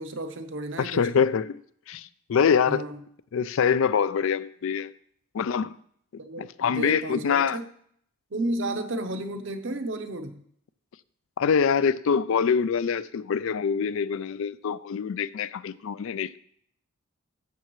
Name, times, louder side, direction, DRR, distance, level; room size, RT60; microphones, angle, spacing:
voice 1, 0.0-1.1 2.7-3.0 6.2-7.6 8.3-10.4, right 1 dB, 60° right, 0.8 m, -32 dB
voice 2, 0.8-1.6 1.9-2.9 3.3-4.9 5.3-5.7 6.4-7.6 11.4-16.4, left 6 dB, 65° left, 0.4 m, -25 dB
12.0 x 7.4 x 3.1 m
head